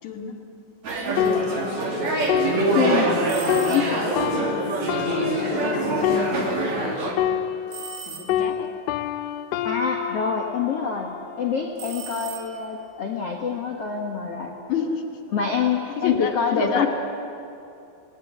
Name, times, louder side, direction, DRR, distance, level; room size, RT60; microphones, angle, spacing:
voice 1, 0.0-0.4 1.1-1.8 4.5-4.8 5.3-7.4 8.0-8.7 14.7-15.1 16.0-16.9, left 5 dB, 45° left, 3 dB, 2.9 m, -30 dB
sound 1, 0.8-7.1, right 2 dB, 40° right, 3.3 m, -25 dB
sound 2, 1.2-8.0 8.3-11.9 12.5-12.7, left 11 dB, 80° left, 3.2 m, -28 dB
voice 2, 2.7-3.2 3.7-4.4 9.6-14.5 15.3-16.9, left 6 dB, 65° left, 0 dB, 1.5 m, -26 dB
sound 3, 3.3-4.2 7.7-8.7 11.8-12.9, right 8 dB, 75° right, 4.4 m, -39 dB
27.5 x 19.0 x 9.6 m, 2.7 s
omnidirectional pair, 5.9 m